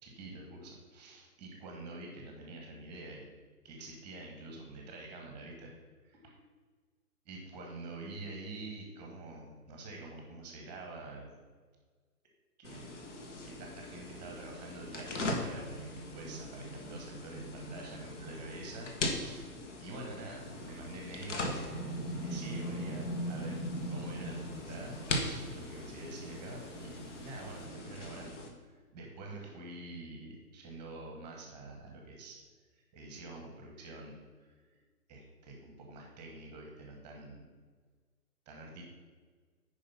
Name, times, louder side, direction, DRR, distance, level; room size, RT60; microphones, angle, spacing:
voice 1, 0.0-3.2 3.6-5.7 6.0-6.4 7.2-11.3 12.6-12.9 13.4-19.5 19.8-23.6 23.9-32.4 32.7-34.8 35.1-37.4 38.4-38.8, right 2 dB, 10° right, 1 dB, 1.1 m, -47 dB
sound 1, 12.6-28.5, left 1 dB, 50° left, 1.5 m, -39 dB
sound 2, 20.4-27.7, left 1 dB, 20° left, 0.5 m, -51 dB
9.4 x 5.1 x 5.7 m, 1.5 s
figure-of-eight pair, 140°, 46 cm